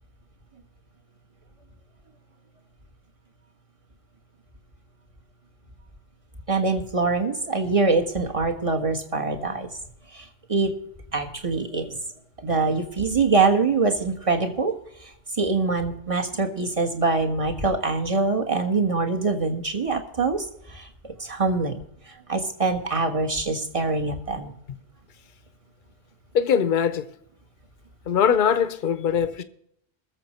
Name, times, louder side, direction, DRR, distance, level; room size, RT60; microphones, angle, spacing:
voice 1, 6.5-9.7 10.1-10.7 11.1-12.0 12.4-14.7 15.0-21.8 22.1-24.5, right 3 dB, 30° right, 1.5 m, -24 dB
voice 2, 26.3-27.1 28.1-29.4, left 7 dB, 50° left, 0.9 m, -21 dB
20.0 x 7.3 x 4.3 m
omnidirectional pair, 1.2 m